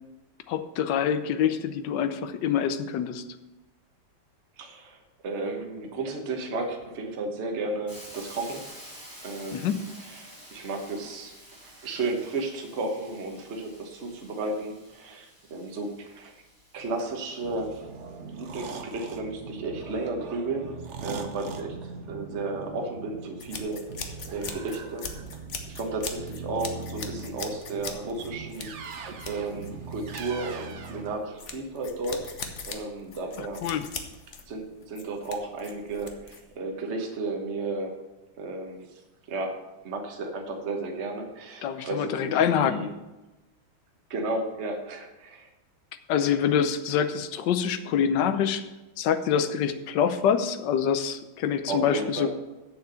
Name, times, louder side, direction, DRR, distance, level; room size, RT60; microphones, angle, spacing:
voice 1, 0.5-3.2 9.5-9.8 33.6-33.8 41.6-42.9 46.1-48.6 49.0-52.3, left 8 dB, 65° left, 10 dB, 1.3 m, -25 dB
voice 2, 4.6-8.6 9.2-9.8 10.0-16.3 16.7-17.9 18.3-20.7 21.0-25.4 25.7-28.9 29.3-32.3 32.7-33.6 34.5-37.9 38.4-38.8 39.3-39.6 39.8-42.9 44.1-45.5 51.7-52.3, right 2 dB, 35° right, 2 dB, 1.4 m, -33 dB
Hiss, 7.9-17.8, equal, 10° left, 2.8 m, -49 dB
sound 1, 16.8-31.2, right 4 dB, 55° right, 0.8 m, -41 dB
sound 2, 23.4-36.5, left 5 dB, 45° left, 1.1 m, -41 dB
8.0 x 7.1 x 6.9 m, 1.1 s
omnidirectional pair, 2.3 m